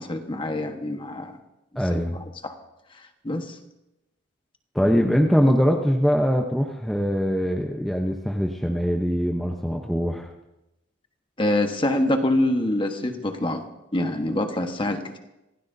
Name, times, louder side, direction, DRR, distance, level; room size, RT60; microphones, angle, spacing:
voice 1, 0.0-1.4 1.9-2.0 2.4-2.5 2.9-3.6 11.4-13.6 13.9-15.2, left 1 dB, 25° left, 5 dB, 1.3 m, -25 dB
voice 2, 1.8-2.2 4.7-10.3, equal, ahead, 1 dB, 0.8 m, -22 dB
27.0 x 16.0 x 2.7 m, 0.91 s
head